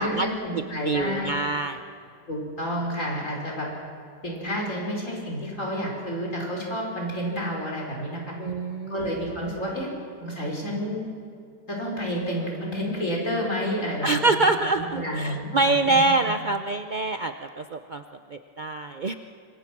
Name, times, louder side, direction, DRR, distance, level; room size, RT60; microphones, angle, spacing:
voice 1, 0.0-1.3 2.3-3.7 4.2-8.3 8.9-9.9 10.2-11.0 11.7-14.5 14.7-16.1, equal, 45° left, -2 dB, 5.7 m, -30 dB
voice 2, 0.9-1.8 8.4-9.1 14.0-18.0 18.3-19.1, right 3 dB, 65° right, 7 dB, 0.4 m, -25 dB
26.5 x 23.5 x 6.1 m, 2.4 s
omnidirectional pair, 1.9 m